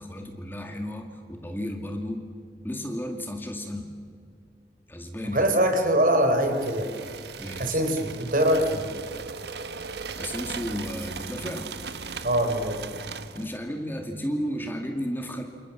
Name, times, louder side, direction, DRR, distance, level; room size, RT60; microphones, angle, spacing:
voice 1, 0.0-2.3 2.6-3.9 4.9-5.5 7.4-7.8 10.2-11.7 13.3-15.4, equal, 10° left, 4 dB, 2.2 m, -33 dB
voice 2, 5.3-6.9 7.6-8.9 12.2-12.8, right 1 dB, 50° right, 5 dB, 4.3 m, -23 dB
sound 1, 6.4-13.6, right 5 dB, 70° right, 1.4 m, -38 dB
28.5 x 28.0 x 7.3 m, 2.2 s
head